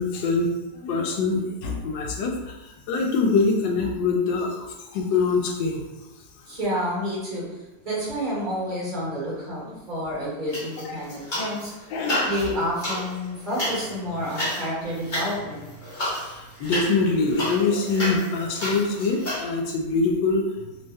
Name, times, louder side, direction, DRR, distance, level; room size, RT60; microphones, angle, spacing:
voice 1, 0.0-5.8 9.7-9.8 10.8-11.0 11.9-12.2 16.1-20.5, left 3 dB, 80° left, 1 dB, 1.3 m, -24 dB
voice 2, 6.5-7.6 7.8-11.7 12.3-15.7, equal, 30° right, -7 dB, 1.0 m, -29 dB
sound 1, 10.5-11.7 12.0-19.4, left 1 dB, 35° left, 0.8 m, -31 dB
3.3 x 2.1 x 3.4 m, 1.0 s
omnidirectional pair, 2.1 m